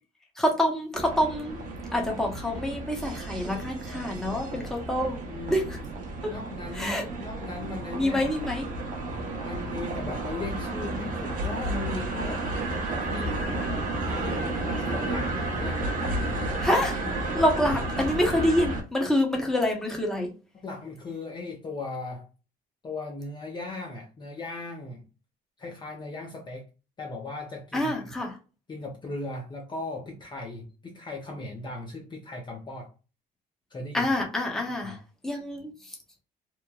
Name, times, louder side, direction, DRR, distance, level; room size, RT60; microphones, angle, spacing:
voice 1, 0.4-1.6 1.9-5.2 5.5-5.8 6.2-6.3 6.7-7.1 7.9-8.7 16.6-17.0 17.3-20.3 27.7-28.4 33.9-35.0 35.2-35.9, left 1 dB, 5° left, 0 dB, 0.8 m, -26 dB
sound 1, 0.9-18.8, right 2 dB, 50° right, 0.7 m, -32 dB
voice 2, 4.0-4.6 5.3-5.8 6.3-8.4 9.4-12.5 13.0-13.4 14.1-14.6 14.9-16.2 17.6-17.7 20.5-22.3 22.8-25.1 25.6-26.7 27.0-28.1 28.7-32.9 33.7-34.1 34.8-35.0, left 2 dB, 25° left, 0 dB, 0.6 m, -38 dB
sound 2, 12.2-17.3, left 3 dB, 70° left, 0.8 m, -43 dB
2.9 x 2.1 x 2.3 m, 0.32 s
cardioid pair, 110°, 17 cm